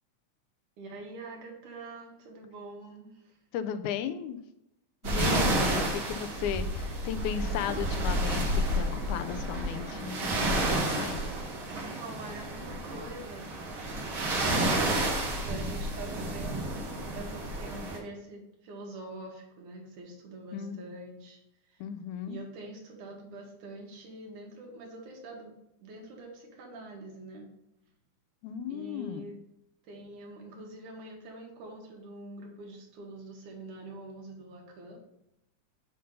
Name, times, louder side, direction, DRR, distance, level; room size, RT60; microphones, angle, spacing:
voice 1, 0.8-3.3 12.0-13.8 14.3-21.4 21.7-21.8 22.3-27.5 28.7-29.4 29.8-35.0, right 2 dB, 75° right, 0 dB, 3.0 m, -45 dB
voice 2, 3.5-4.4 5.0-11.2 20.5-21.0 21.8-22.4 28.4-29.3, left 8 dB, 80° left, 10 dB, 2.0 m, -35 dB
sound 1, 5.0-18.0, right 1 dB, 50° right, 1.9 m, -30 dB
7.7 x 5.4 x 3.8 m, 0.83 s
omnidirectional pair, 3.5 m